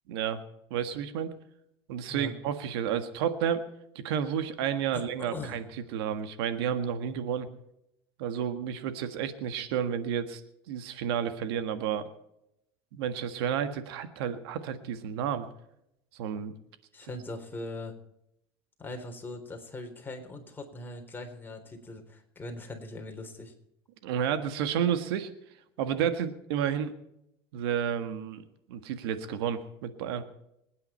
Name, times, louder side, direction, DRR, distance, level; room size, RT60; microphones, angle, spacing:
voice 1, 0.1-0.4 0.7-1.3 1.9-3.7 4.0-5.6 5.9-7.5 8.2-10.4 10.7-12.1 12.9-15.5 16.1-16.5 24.0-25.3 25.8-26.9 27.5-28.4 28.7-30.2, right 8 dB, 85° right, 10 dB, 1.6 m, -31 dB
voice 2, 4.9-5.6 16.9-18.0 18.8-23.5, left 2 dB, 15° left, 3 dB, 3.8 m, -40 dB
25.5 x 9.6 x 4.4 m, 0.81 s
supercardioid pair, 110°, 13 cm